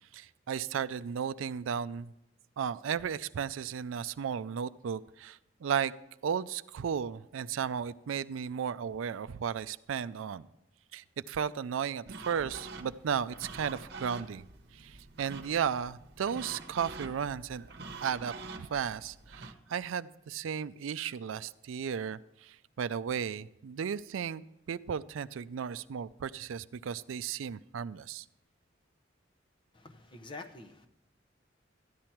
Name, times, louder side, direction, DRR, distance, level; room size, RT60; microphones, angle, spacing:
voice 1, 0.1-2.1 2.6-5.9 6.2-10.5 10.9-14.4 14.7-17.7 18.0-24.4 24.7-28.3, right 7 dB, 85° right, 16 dB, 0.4 m, -35 dB
sound 1, 12.1-19.5, right 3 dB, 55° right, 1.0 m, -46 dB
voice 2, 29.7-30.9, left 3 dB, 25° left, 5 dB, 0.7 m, -47 dB
13.5 x 10.5 x 4.5 m, 0.84 s
head